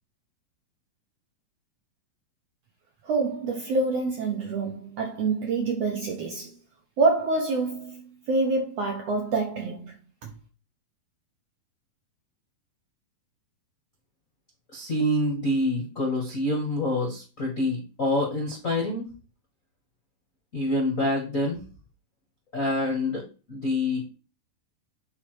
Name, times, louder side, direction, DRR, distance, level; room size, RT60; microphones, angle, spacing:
voice 1, 3.0-6.6 7.0-9.9 10.2-10.3, right 3 dB, 65° right, 1.8 m, -26 dB
voice 2, 14.7-19.1 20.5-21.6 22.5-24.1, left 1 dB, 45° left, 1.1 m, -26 dB
8.7 x 4.2 x 4.8 m
omnidirectional pair, 4.1 m